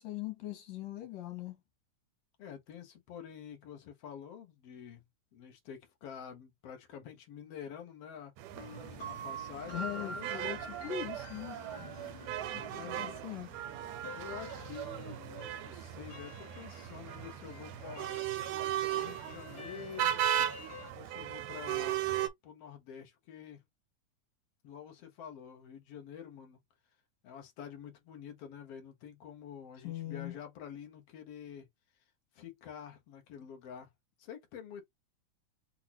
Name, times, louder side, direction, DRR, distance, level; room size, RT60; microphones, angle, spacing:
voice 1, 0.0-1.6 9.7-12.0 12.5-13.5 29.8-30.3, left 12 dB, 90° left, 3.2 m, -41 dB
voice 2, 2.4-5.0 5.3-8.3 9.0-10.5 12.4-13.3 14.1-18.1 18.9-20.3 20.9-22.0 22.4-23.6 24.6-26.6 27.2-31.7 32.3-33.9 34.2-34.8, left 8 dB, 60° left, 1.8 m, -48 dB
sound 1, 8.4-22.3, right 11 dB, 80° right, 2.1 m, -37 dB
sound 2, 8.5-20.9, right 1 dB, 45° left, 1.6 m, -48 dB
6.1 x 2.6 x 2.9 m
omnidirectional pair, 3.7 m